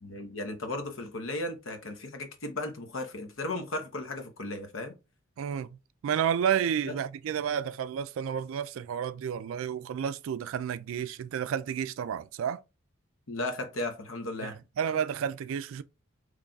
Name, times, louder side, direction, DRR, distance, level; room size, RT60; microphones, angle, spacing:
voice 1, 0.0-4.9 6.9-7.0 13.3-14.6, left 2 dB, 65° left, 0.8 m, -35 dB
voice 2, 5.4-5.8 6.0-12.6 14.4-15.8, right 8 dB, 70° right, 0.3 m, -31 dB
3.9 x 3.2 x 2.3 m
head